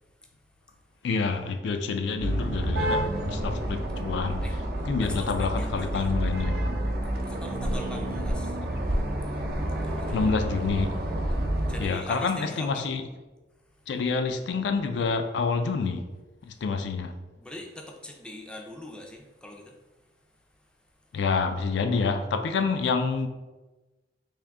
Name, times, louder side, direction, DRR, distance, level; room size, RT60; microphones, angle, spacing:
voice 1, 1.0-4.4 4.8-6.6 10.1-11.0 11.8-13.0 13.9-16.0 16.4-17.1 21.1-23.3, left 4 dB, 80° left, 7 dB, 0.3 m, -27 dB
sound 1, 2.2-11.9, right 1 dB, 55° right, 0.6 m, -29 dB
voice 2, 5.0-6.1 7.3-8.6 9.8-10.3 11.7-12.9 13.8-13.9 17.4-19.8 20.6-20.7, left 1 dB, 5° left, 1 dB, 0.4 m, -42 dB
3.5 x 2.6 x 3.5 m, 1.2 s
head